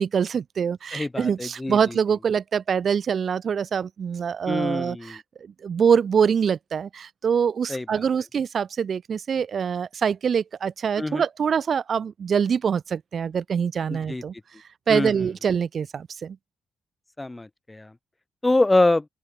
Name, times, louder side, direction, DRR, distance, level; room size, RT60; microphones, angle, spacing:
voice 1, 0.0-5.2 5.6-14.3 14.9-16.4, right 7 dB, 55° right, 0.4 m, -24 dB
voice 2, 0.9-2.0 4.5-5.2 7.7-7.9 11.0-11.2 13.9-14.2 14.9-15.1 17.2-17.9 18.4-19.1, left 2 dB, 15° left, 0.9 m, -24 dB
open air
cardioid pair, 95°, 0 cm